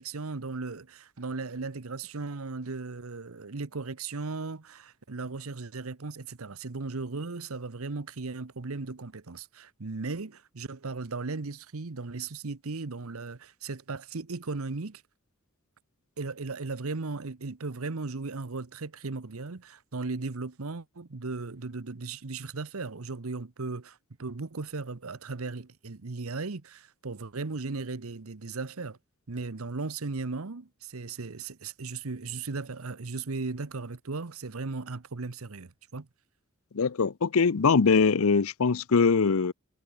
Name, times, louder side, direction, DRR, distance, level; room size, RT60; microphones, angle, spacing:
voice 1, 0.0-15.0 16.2-29.0 29.3-36.1, right 3 dB, 80° right, 1.0 m, -36 dB
voice 2, 36.7-39.5, left 5 dB, 75° left, 0.6 m, -22 dB
head